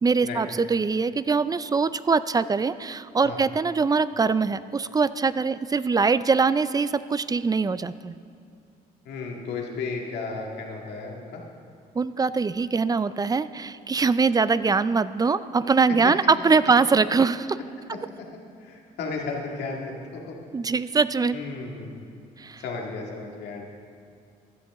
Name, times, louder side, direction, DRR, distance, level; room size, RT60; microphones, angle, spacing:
voice 1, 0.0-8.2 11.9-17.6 17.9-18.0 20.5-21.4 22.4-22.6, right 4 dB, 25° right, 15 dB, 0.4 m, -23 dB
voice 2, 9.1-11.4 18.6-20.4 21.3-22.0 22.6-23.6, left 4 dB, 85° left, 0 dB, 1.9 m, -34 dB
15.5 x 11.5 x 3.6 m, 2.5 s
cardioid pair, 80°, 17 cm